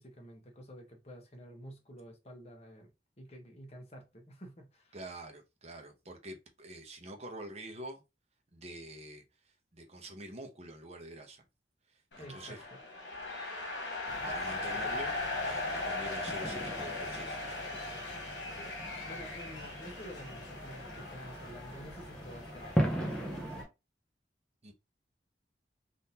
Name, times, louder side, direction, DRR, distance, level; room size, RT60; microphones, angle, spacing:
voice 1, 0.0-5.0 12.2-12.6 14.8-15.0 18.5-23.7, equal, 35° left, 1.0 m, -50 dB
voice 2, 4.9-8.0 8.5-9.2 9.7-11.5 11.9-12.6 14.2-15.1 15.4-17.6 24.6-24.7, right 1 dB, 35° right, 0.8 m, -46 dB
sound 1, 12.1-23.6, left 2 dB, 80° left, 1.3 m, -39 dB
sound 2, 14.1-23.6, equal, 5° left, 0.6 m, -39 dB
3.6 x 2.6 x 2.8 m
head